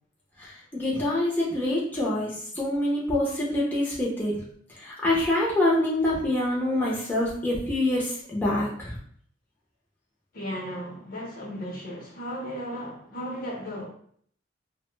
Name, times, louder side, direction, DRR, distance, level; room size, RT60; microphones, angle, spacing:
voice 1, 0.4-4.4 4.7-8.9, left 1 dB, 10° left, 0.5 m, -26 dB
voice 2, 10.3-13.8, equal, 50° left, 0.7 m, -35 dB
2.6 x 2.1 x 3.1 m
head